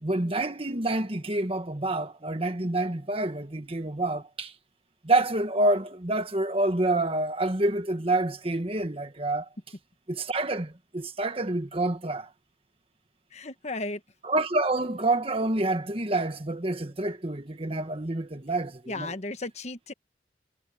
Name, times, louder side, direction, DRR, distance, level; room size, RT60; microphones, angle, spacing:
voice 1, 0.0-4.5 5.0-9.5 10.1-12.3 14.2-19.1, right 2 dB, 35° right, 1.6 m, -27 dB
voice 2, 13.3-14.0 18.9-19.9, left 2 dB, 40° left, 1.2 m, -35 dB
head